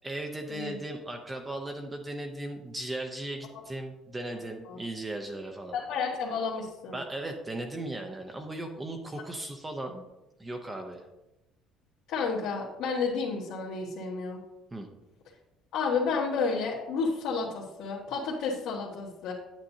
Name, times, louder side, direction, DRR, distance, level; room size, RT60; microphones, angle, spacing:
voice 1, 0.0-5.8 6.9-10.0 10.4-11.1 14.7-14.9, right 1 dB, 15° right, 3 dB, 0.6 m, -37 dB
voice 2, 5.7-7.0 12.1-14.4 15.7-19.3, left 4 dB, 75° left, -6 dB, 1.6 m, -31 dB
9.0 x 8.5 x 2.8 m, 0.98 s
cardioid pair, 165°, 0 cm